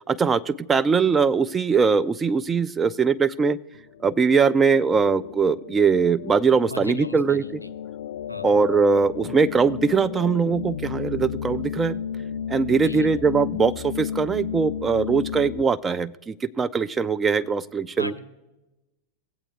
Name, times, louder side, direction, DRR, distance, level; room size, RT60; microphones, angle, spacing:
voice 1, 0.1-3.6 4.0-7.4 8.4-12.0 12.5-18.1, right 5 dB, 15° right, 14 dB, 0.3 m, -21 dB
sound 1, 3.7-15.6, left 8 dB, 60° left, 0.3 m, -33 dB
voice 2, 6.7-7.7 8.3-8.5 12.8-13.1 18.0-18.2, left 1 dB, 90° left, 10 dB, 0.7 m, -36 dB
18.5 x 8.2 x 2.3 m, 1.0 s
figure-of-eight pair, 90°, 0 cm